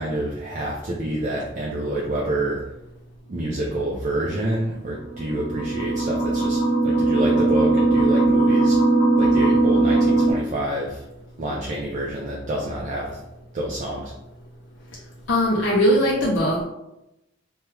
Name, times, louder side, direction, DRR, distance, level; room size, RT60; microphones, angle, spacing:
voice 1, 0.0-2.6 3.3-8.8 9.2-11.0 11.4-13.2 13.5-14.1, right 1 dB, 40° right, -3 dB, 0.4 m, -27 dB
sound 1, 5.0-10.3, right 2 dB, 80° left, 1.2 m, -19 dB
voice 2, 15.3-16.6, equal, 65° left, -3 dB, 0.5 m, -19 dB
3.3 x 2.2 x 3.1 m, 0.91 s
head